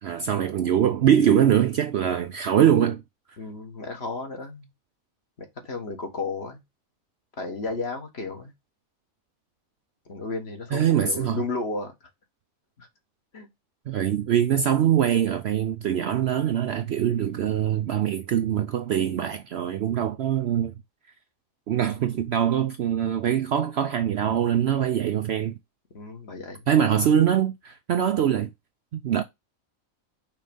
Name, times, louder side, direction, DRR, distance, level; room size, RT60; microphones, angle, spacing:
voice 1, 0.0-3.0 10.7-11.4 13.9-20.7 21.7-25.6 26.7-28.5 28.9-29.2, right 9 dB, 65° right, 0.7 m, -23 dB
voice 2, 3.4-4.7 5.4-6.6 7.4-8.5 10.1-11.9 12.8-12.9 13.3-13.5 25.9-26.7, left 3 dB, 50° left, 1.7 m, -33 dB
5.7 x 3.2 x 5.3 m
omnidirectional pair, 1.5 m